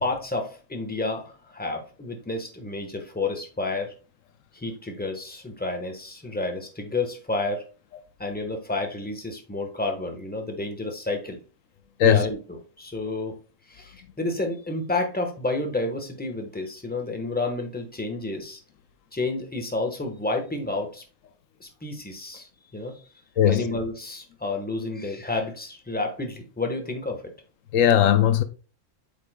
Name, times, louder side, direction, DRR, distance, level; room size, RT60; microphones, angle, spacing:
voice 1, 0.0-3.9 4.5-7.6 8.2-11.4 12.0-13.4 13.7-18.6 19.1-21.0 21.6-23.0 23.4-27.3, left 2 dB, 10° left, 1.1 m, -30 dB
voice 2, 27.7-28.4, left 10 dB, 85° left, 1.0 m, -18 dB
8.1 x 5.3 x 2.2 m
omnidirectional pair, 1.3 m